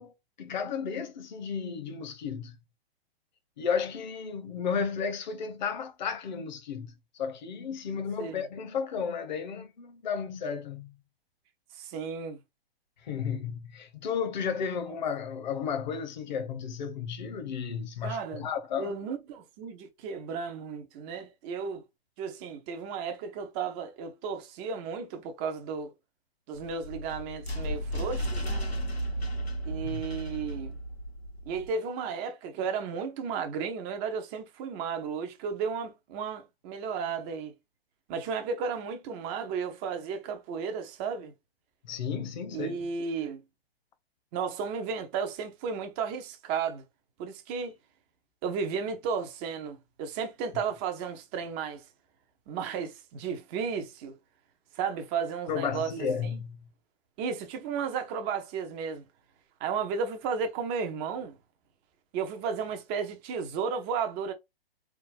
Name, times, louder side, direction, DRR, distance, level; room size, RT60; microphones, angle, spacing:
voice 1, 0.0-2.6 3.6-10.9 13.0-18.9 29.8-30.0 41.8-42.8 55.5-56.6, left 6 dB, 50° left, 0.9 m, -33 dB
voice 2, 11.7-12.4 18.0-18.5 18.8-21.8 22.2-25.9 26.5-28.7 29.6-30.8 31.5-37.5 38.1-41.3 42.5-43.4 44.3-46.8 47.2-47.7 48.4-51.8 52.5-54.1 54.7-55.9 56.2-56.4 57.2-59.0 59.6-61.4 62.1-64.3, right 6 dB, 10° right, 0.4 m, -34 dB
sound 1, 26.5-31.7, equal, 85° left, 1.2 m, -34 dB
4.3 x 3.4 x 2.4 m
figure-of-eight pair, 120°, 30 cm